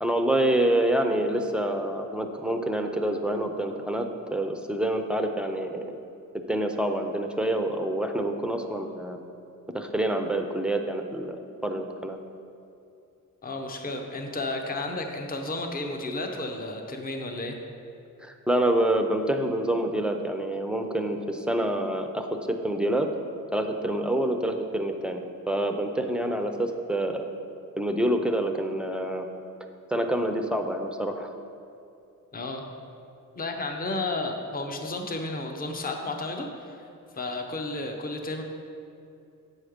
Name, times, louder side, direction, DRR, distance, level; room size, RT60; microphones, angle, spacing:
voice 1, 0.0-5.8 6.5-9.2 9.7-12.2 18.2-23.1 23.5-27.3 27.8-29.3 29.9-31.3, right 1 dB, 5° right, 4 dB, 0.5 m, -27 dB
voice 2, 13.4-17.6 32.3-32.6 33.4-36.9 37.1-38.4, left 2 dB, 25° left, 3 dB, 0.7 m, -32 dB
7.7 x 6.4 x 5.0 m, 2.6 s
wide cardioid pair, 135°, 33 cm